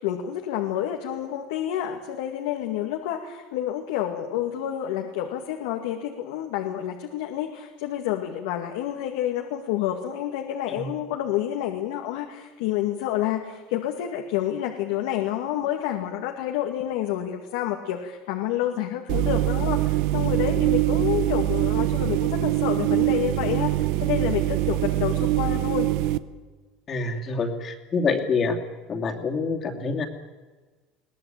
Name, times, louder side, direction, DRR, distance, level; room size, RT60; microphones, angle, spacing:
voice 1, 0.0-25.9, left 11 dB, 80° left, 3 dB, 2.2 m, -29 dB
sound 1, 19.1-26.2, right 16 dB, 65° right, 0.9 m, -23 dB
voice 2, 26.9-28.6 28.9-30.1, left 4 dB, 30° left, 3 dB, 2.7 m, -26 dB
22.0 x 18.0 x 9.1 m, 1.3 s
cardioid pair, 145°, 0 cm